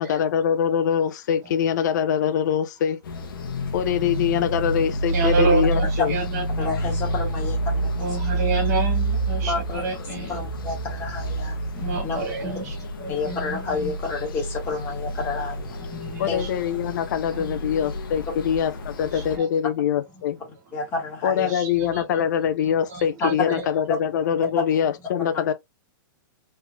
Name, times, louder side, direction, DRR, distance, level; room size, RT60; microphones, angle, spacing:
voice 1, 0.0-3.0 3.7-6.2 16.2-20.4 21.2-25.5, left 8 dB, 60° left, 0.5 m, -24 dB
sound 1, 3.0-19.4, right 1 dB, 85° left, 0.9 m, -28 dB
voice 2, 4.0-4.5 4.8-6.7 8.0-10.4 11.7-14.0 15.1-15.2 15.7-16.5 17.3-17.8 19.1-19.5 21.4-22.2 22.6-23.7 24.4-24.5, right 3 dB, 50° right, 2.0 m, -30 dB
voice 3, 6.6-8.1 9.4-9.9 10.3-11.6 12.0-12.2 13.1-15.8 16.3-16.4 20.7-21.5 23.2-23.5, left 4 dB, 20° left, 1.6 m, -29 dB
3.3 x 3.2 x 2.2 m
hypercardioid pair, 160°, 11 cm